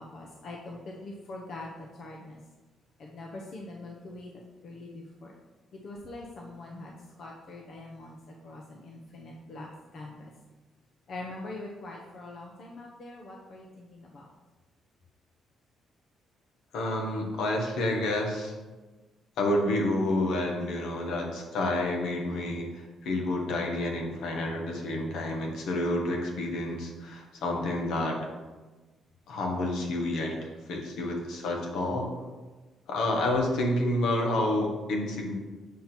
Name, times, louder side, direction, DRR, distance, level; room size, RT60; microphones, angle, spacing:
voice 1, 0.0-2.4 3.0-4.3 4.6-5.3 5.7-8.2 8.4-9.7 9.9-10.3 11.1-14.2, left 2 dB, 60° left, -1 dB, 0.8 m, -43 dB
voice 2, 16.7-18.5 19.4-22.7 23.0-28.2 29.3-30.4 30.7-32.3 32.9-35.3, left 1 dB, 80° left, 0 dB, 1.3 m, -29 dB
7.3 x 2.9 x 5.9 m, 1.2 s
cardioid pair, 90°, 0 cm